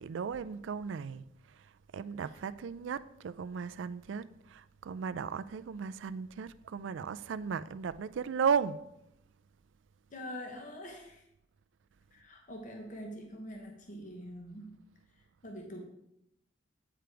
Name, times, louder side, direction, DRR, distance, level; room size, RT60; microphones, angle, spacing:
voice 1, 0.0-8.8, right 6 dB, 80° right, 0.4 m, -36 dB
voice 2, 10.1-11.3 12.1-14.8 15.4-15.8, equal, 40° left, 0.9 m, -44 dB
8.9 x 5.1 x 4.6 m
head